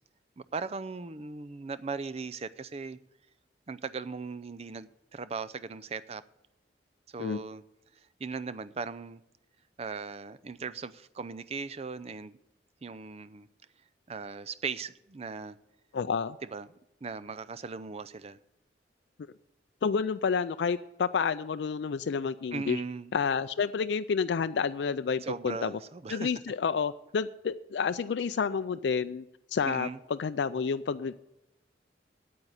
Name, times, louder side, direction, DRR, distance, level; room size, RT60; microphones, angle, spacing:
voice 1, 0.4-3.0 3.7-6.2 7.1-7.6 8.2-9.2 9.8-12.4 12.8-13.5 14.1-15.6 16.5-16.7 17.0-18.4 22.5-23.1 25.2-26.3 29.6-30.0, right 4 dB, 35° right, 0.5 m, -38 dB
voice 2, 15.9-16.4 19.8-22.8 23.1-25.7 26.1-29.3 29.5-31.2, left 6 dB, 70° left, 0.4 m, -29 dB
8.9 x 8.6 x 8.0 m
head